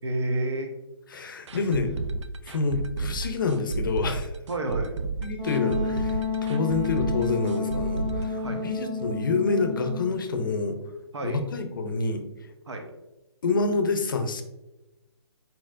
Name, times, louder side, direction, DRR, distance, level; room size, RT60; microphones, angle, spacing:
voice 1, 0.0-0.8 1.5-1.8 4.5-4.9 8.4-8.7 11.1-11.4 12.7-12.9, right 2 dB, 75° right, 4 dB, 1.0 m, -30 dB
voice 2, 1.1-1.9 2.4-4.3 5.2-6.2 6.5-10.8 11.2-12.2 13.4-14.4, left 4 dB, 50° left, 7 dB, 0.6 m, -27 dB
sound 1, 1.5-9.2 9.5-9.6 10.0-10.1, right 3 dB, 90° right, 0.4 m, -31 dB
Wind instrument woodwind instrument, 5.4-10.2, left 5 dB, 10° right, 0.7 m, -30 dB
4.3 x 4.2 x 2.5 m, 0.99 s
hypercardioid pair, 170°, 15 cm